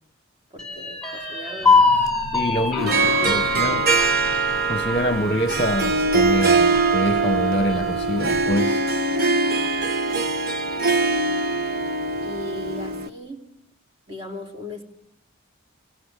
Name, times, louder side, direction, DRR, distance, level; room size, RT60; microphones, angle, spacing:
voice 1, 0.5-2.1 2.5-3.9 12.2-13.6 14.1-14.8, left 1 dB, 25° right, 3.6 m, -37 dB
sound 1, 0.6-8.2 8.7-8.8 9.2-9.8, left 4 dB, 5° left, 4.5 m, -25 dB
sound 2, 1.6-8.5, right 1 dB, 85° right, 5.4 m, -39 dB
voice 2, 2.3-3.8 4.7-8.8, left 1 dB, 30° left, 1.2 m, -25 dB
Harp, 2.8-13.1, right 3 dB, 45° right, 1.3 m, -22 dB
26.5 x 26.0 x 8.2 m
head